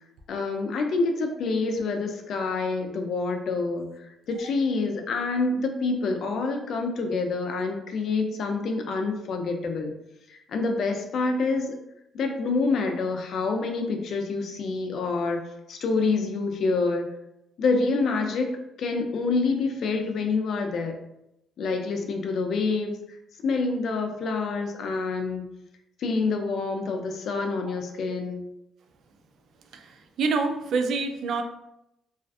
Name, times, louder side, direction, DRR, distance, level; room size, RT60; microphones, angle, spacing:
voice 1, 0.3-9.9 10.3-11.8 12.1-17.1 17.6-20.9 21.6-23.2 23.4-25.4 26.0-28.4, left 3 dB, 65° left, 4 dB, 0.4 m, -27 dB
voice 2, 30.2-31.4, right 4 dB, 70° right, 6 dB, 0.3 m, -26 dB
2.4 x 2.3 x 2.3 m, 0.85 s
cardioid pair, 90°, 0 cm